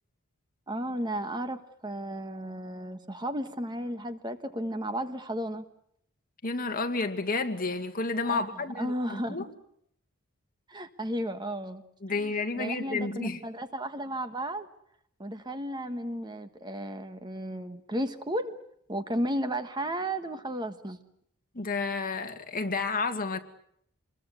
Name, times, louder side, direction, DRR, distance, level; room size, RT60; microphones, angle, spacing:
voice 1, 0.7-5.6 8.2-8.4 8.7-9.5 10.7-11.8 12.2-14.7 15.2-18.6 18.9-21.0, right 1 dB, 20° right, 1.3 m, -34 dB
voice 2, 6.4-9.4 12.0-13.4 21.5-23.4, left 3 dB, 40° left, 2.2 m, -31 dB
27.5 x 22.0 x 8.1 m
head